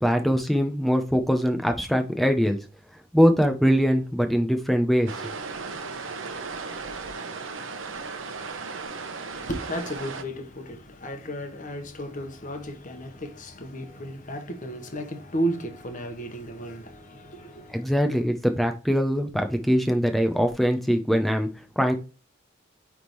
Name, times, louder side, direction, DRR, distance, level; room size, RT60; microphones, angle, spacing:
voice 1, 0.0-2.6 3.1-5.3 17.7-21.9, equal, ahead, 0.6 m, -22 dB
sound 1, 5.1-10.2, right 4 dB, 75° right, 0.9 m, -36 dB
voice 2, 9.3-18.0, right 1 dB, 40° left, 1.1 m, -34 dB
9.4 x 3.5 x 3.1 m
head